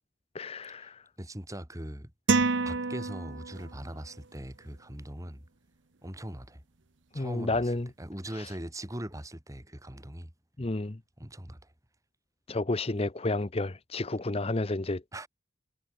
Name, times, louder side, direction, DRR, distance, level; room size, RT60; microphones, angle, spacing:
voice 1, 0.3-1.0 7.1-7.9 10.6-11.0 12.5-15.0, left 2 dB, 30° left, 0.9 m, -31 dB
voice 2, 1.2-2.1 2.6-5.4 6.0-6.6 7.1-10.3 11.2-11.6 15.1-15.3, right 1 dB, 15° right, 3.1 m, -41 dB
sound 1, 2.3-3.8, right 3 dB, 75° right, 1.1 m, -28 dB
head